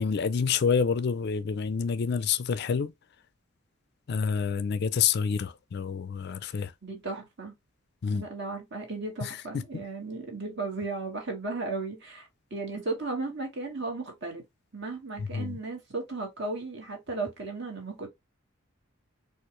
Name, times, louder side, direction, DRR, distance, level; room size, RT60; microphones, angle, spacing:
voice 1, 0.0-2.9 4.1-6.7 8.0-8.3 9.2-9.8 15.2-15.6, left 6 dB, 50° left, 0.4 m, -28 dB
voice 2, 6.8-7.5 8.1-14.4 14.7-18.1, right 3 dB, 55° right, 1.6 m, -35 dB
4.3 x 2.4 x 3.0 m
head